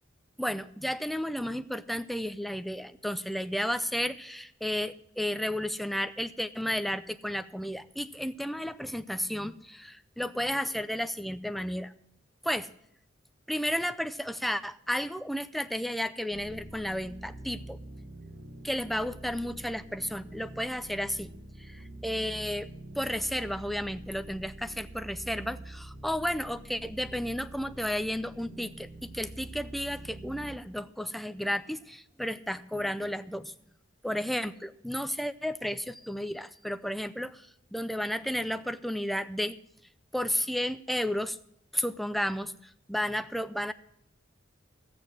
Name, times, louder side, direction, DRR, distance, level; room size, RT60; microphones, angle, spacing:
voice 1, 0.4-11.9 12.4-12.7 13.5-17.8 18.6-21.3 21.6-22.7 23.0-33.5 34.0-39.6 40.1-41.4 41.7-42.5 42.9-43.7, equal, ahead, 11 dB, 0.5 m, -32 dB
sound 1, 16.3-30.6, right 1 dB, 65° right, 1.4 m, -46 dB
14.0 x 8.6 x 6.2 m, 0.74 s
head